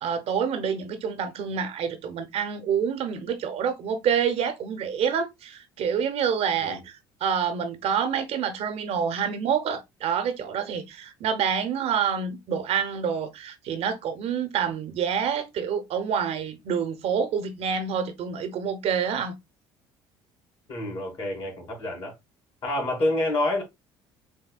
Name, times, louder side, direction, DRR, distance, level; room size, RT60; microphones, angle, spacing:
voice 1, 0.0-19.3, right 7 dB, 60° right, 0.8 m, -27 dB
voice 2, 20.7-22.2 22.6-23.6, left 1 dB, 50° left, 2.4 m, -27 dB
6.2 x 2.2 x 2.3 m
hypercardioid pair, 65°, 12 cm